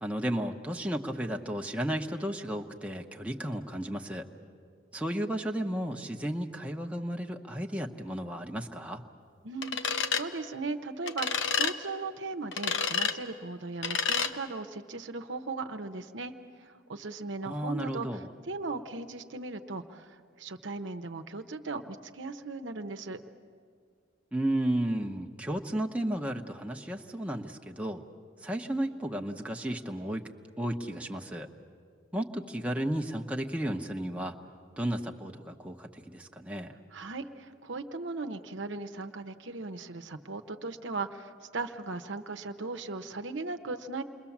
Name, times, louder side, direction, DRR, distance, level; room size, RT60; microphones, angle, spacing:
voice 1, 0.0-4.3 4.9-9.0 17.4-18.3 24.3-28.0 28.4-30.2 30.6-31.5 32.1-34.4 34.8-36.7, right 1 dB, 5° right, 2 dB, 1.0 m, -33 dB
voice 2, 9.4-16.3 16.6-23.2 36.9-44.0, right 3 dB, 70° right, 7 dB, 0.9 m, -38 dB
sound 1, 9.6-10.2 11.1-11.7 12.5-13.1 13.8-14.3, left 6 dB, 75° left, 1.0 m, -29 dB
28.5 x 22.0 x 7.3 m, 2.2 s
head